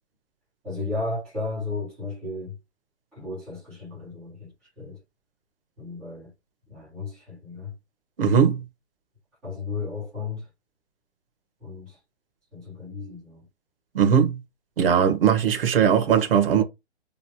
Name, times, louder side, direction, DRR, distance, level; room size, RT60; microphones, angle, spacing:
voice 1, 0.6-2.6 3.1-5.0 5.8-6.3 6.7-7.7 9.4-10.5 11.6-12.0 12.5-13.5, left 3 dB, ahead, 0.3 m, -34 dB
voice 2, 8.2-8.6 13.9-14.4 14.8-16.6, right 7 dB, 55° right, 1.0 m, -19 dB
3.1 x 2.4 x 2.8 m
hypercardioid pair, 145°, 34 cm